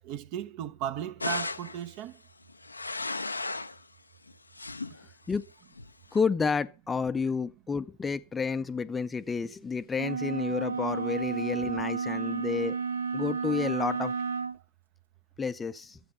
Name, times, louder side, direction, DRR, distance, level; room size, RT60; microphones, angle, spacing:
voice 1, 0.0-2.2, right 10 dB, 45° right, 1.0 m, -36 dB
sound 1, 1.2-1.8 2.5-3.8 4.3-5.0 5.8-6.2, left 3 dB, 80° left, 0.5 m, -35 dB
voice 2, 6.1-12.8 13.1-14.1 15.4-16.0, left 5 dB, 15° left, 0.5 m, -30 dB
sound 2, 10.0-14.6, right 5 dB, 65° right, 0.6 m, -32 dB
12.0 x 8.5 x 5.2 m
figure-of-eight pair, 90°, 0 cm